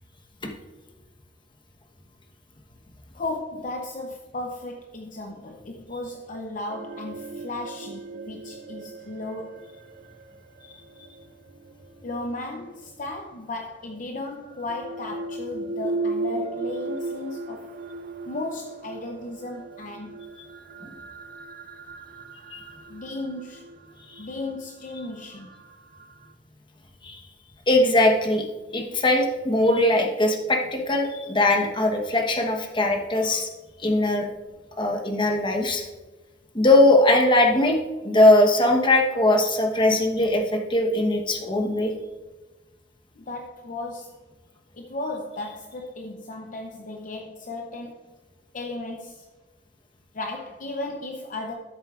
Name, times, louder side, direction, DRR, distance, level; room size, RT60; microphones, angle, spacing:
voice 1, 3.1-9.7 12.0-17.7 18.3-20.2 22.9-23.7 24.2-25.5 32.9-33.1 43.2-44.2 44.7-48.0 48.5-49.3 50.1-51.5, left 2 dB, 45° left, 2 dB, 0.7 m, -35 dB
sound 1, 6.7-12.7 13.9-26.3, right 3 dB, 55° right, 0.5 m, -37 dB
voice 2, 27.7-28.5 28.7-33.5 33.8-34.3 34.8-35.8 36.5-37.8 38.0-41.9, left 1 dB, 25° left, 3 dB, 1.1 m, -20 dB
13.0 x 7.3 x 2.5 m, 1.2 s
head